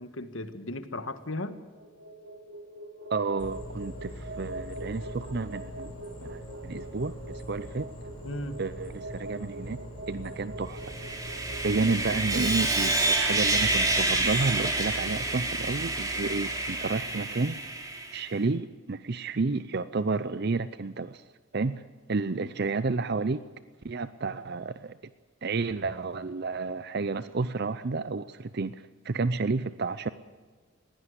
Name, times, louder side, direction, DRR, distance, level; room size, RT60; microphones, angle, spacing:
voice 1, 0.0-1.6 8.2-8.6 22.4-22.5, left 1 dB, 70° left, 10 dB, 1.7 m, -36 dB
sound 1, 1.7-15.9, right 1 dB, 70° right, 3.1 m, -44 dB
voice 2, 3.1-7.9 8.6-9.8 10.1-10.9 11.6-17.6 18.1-21.2 21.5-21.8 22.1-23.4 23.8-25.0 25.4-30.1, right 3 dB, 50° right, 14 dB, 0.6 m, -31 dB
sound 2, 3.4-14.2, equal, 25° left, 5.7 m, -43 dB
Sawing, 10.8-18.2, right 2 dB, 15° right, 3.1 m, -28 dB
21.0 x 16.5 x 8.1 m, 1.4 s
head